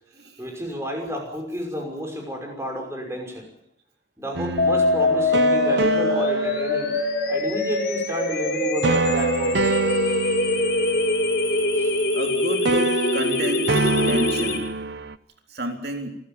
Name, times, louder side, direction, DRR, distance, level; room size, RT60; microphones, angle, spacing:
voice 1, 0.4-3.5 4.2-7.0 7.3-9.8 11.7-11.9, equal, 15° right, 2 dB, 5.9 m, -31 dB
sound 1, 4.3-7.5 8.8-12.3 12.6-15.2, right 3 dB, 75° right, 0.9 m, -27 dB
sound 2, 4.6-14.6, left 2 dB, 60° left, 5.3 m, -23 dB
voice 2, 12.1-14.7 15.5-16.1, equal, 60° right, 3 dB, 3.9 m, -30 dB
27.0 x 14.5 x 8.9 m, 0.77 s
head